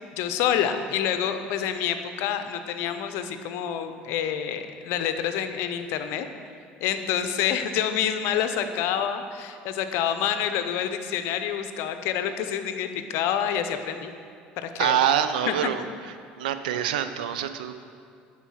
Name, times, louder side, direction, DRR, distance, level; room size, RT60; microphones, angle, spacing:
voice 1, 0.2-6.3 6.8-14.1 14.6-15.0 15.5-15.6, left 9 dB, 70° left, 9 dB, 0.6 m, -27 dB
voice 2, 14.8-15.8 16.4-17.7, right 9 dB, 90° right, 10 dB, 0.5 m, -25 dB
9.0 x 4.4 x 6.3 m, 2.3 s
hypercardioid pair, 80°, 4 cm